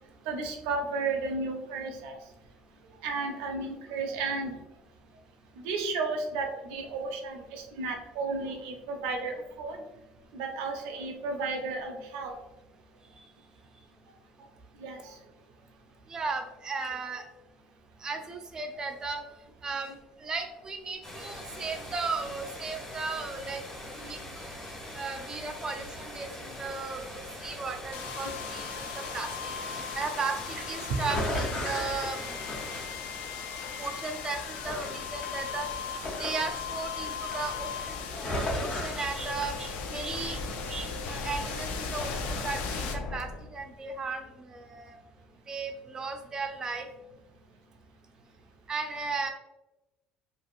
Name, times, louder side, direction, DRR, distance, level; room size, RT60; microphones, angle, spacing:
voice 1, 0.3-2.1 3.0-4.6 5.6-9.8 10.3-12.3 14.8-15.2, right 3 dB, 90° right, 3 dB, 0.6 m, -33 dB
voice 2, 16.1-17.2 18.0-19.2 19.6-23.6 23.9-29.3 29.6-32.4 33.8-40.4 40.7-45.0 45.5-46.9 48.7-49.3, right 4 dB, 25° right, 5 dB, 0.5 m, -36 dB
sound 1, 21.0-32.9, left 1 dB, 20° left, 1.4 m, -43 dB
sound 2, 27.9-43.8, left 5 dB, 75° left, 0.4 m, -37 dB
sound 3, 29.8-30.0 31.0-33.3 33.6-34.3 34.7-37.0 37.3-37.7 38.1-39.4, left 1 dB, 40° left, 0.9 m, -35 dB
3.3 x 2.4 x 2.5 m, 0.97 s
cardioid pair, 115°, 3 cm